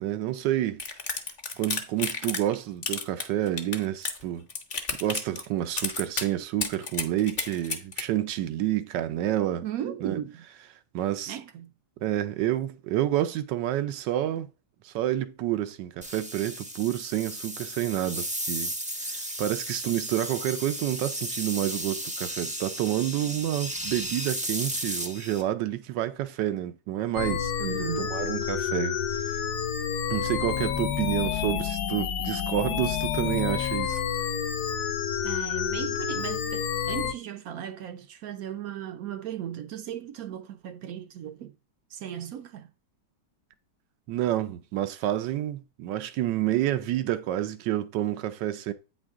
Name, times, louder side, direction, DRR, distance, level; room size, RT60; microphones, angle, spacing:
voice 1, 0.0-0.8 1.6-4.5 5.0-9.7 10.0-10.2 10.9-11.4 12.0-14.5 14.8-18.7 19.0-27.5 28.0-29.0 30.1-34.0 44.1-48.7, right 13 dB, 85° right, 1.3 m, -29 dB
sound 1, 0.8-2.5 2.8-4.2 4.5-5.5 5.8-6.3 6.6-8.0, left 4 dB, 40° left, 1.0 m, -31 dB
voice 2, 9.6-10.4 11.3-11.7 27.6-28.2 35.2-41.5 41.9-42.7, right 10 dB, 70° right, 0.9 m, -36 dB
sound 2, 16.0-25.4, right 1 dB, 10° right, 0.3 m, -34 dB
sound 3, 27.1-37.1, left 8 dB, 70° left, 1.2 m, -29 dB
8.6 x 4.8 x 3.6 m
omnidirectional pair, 1.9 m